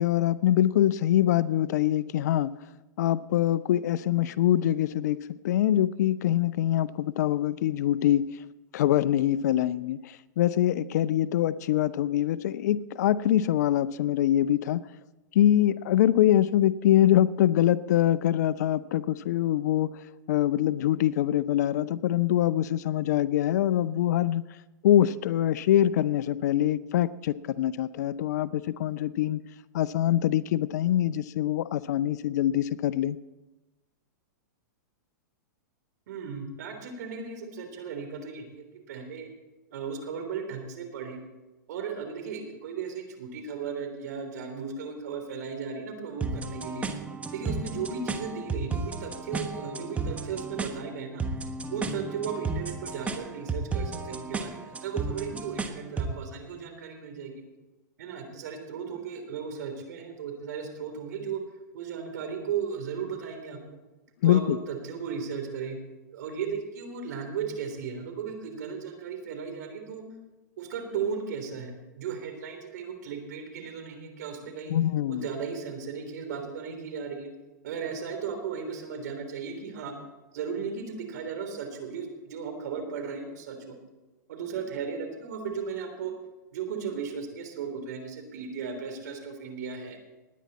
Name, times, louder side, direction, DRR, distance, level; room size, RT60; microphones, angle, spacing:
voice 1, 0.0-2.5 3.0-5.2 5.4-8.2 8.7-14.8 15.3-19.9 20.3-24.4 24.8-29.4 29.7-33.2 64.2-64.6 74.7-75.3, left 12 dB, 65° left, 17 dB, 0.6 m, -24 dB
voice 2, 36.1-39.3 39.7-41.2 41.7-46.9 47.3-51.2 51.7-57.3 58.0-61.4 61.7-63.6 64.2-65.8 66.1-70.0 70.6-74.7 75.1-77.3 77.6-79.9 80.3-83.7 84.3-86.1 86.5-90.0, right 6 dB, 70° right, 5 dB, 3.4 m, -36 dB
sound 1, 46.2-56.2, right 4 dB, 15° right, 1.3 m, -34 dB
19.5 x 9.5 x 4.2 m, 1.1 s
hypercardioid pair, 120°, 10 cm